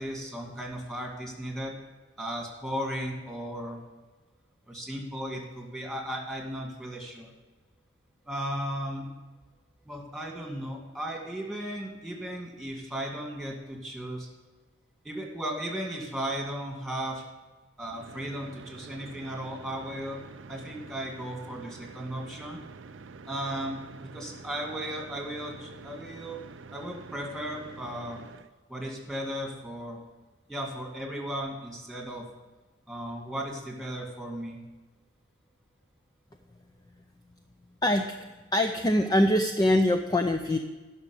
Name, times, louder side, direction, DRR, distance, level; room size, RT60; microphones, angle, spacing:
voice 1, 0.0-1.8 2.2-3.8 4.7-7.3 8.3-9.1 9.9-14.3 15.0-17.2 17.8-20.2 20.5-22.6 23.3-26.4 26.7-28.2 28.7-30.0 30.5-32.3 32.9-34.6, equal, ahead, 0 dB, 2.2 m, -36 dB
sound 1, 17.8-28.5, right 4 dB, 75° right, 0.5 m, -47 dB
voice 2, 37.8-38.2 38.5-40.6, left 1 dB, 20° left, 5 dB, 0.5 m, -23 dB
11.0 x 6.2 x 7.9 m, 1.2 s
head